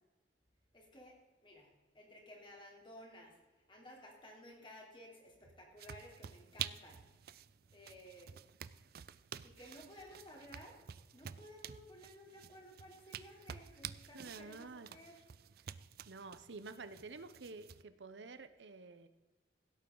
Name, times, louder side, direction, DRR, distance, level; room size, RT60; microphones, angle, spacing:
voice 1, 0.7-3.4 3.7-7.0 7.7-8.4 9.4-10.8 11.1-15.2, left 1 dB, 25° left, -1 dB, 3.5 m, -56 dB
sound 1, 5.8-17.8, right 9 dB, 55° right, 0.4 m, -50 dB
voice 2, 14.1-15.0 16.1-19.1, right 3 dB, 80° right, 11 dB, 0.8 m, -50 dB
16.0 x 8.5 x 3.9 m, 1.2 s
head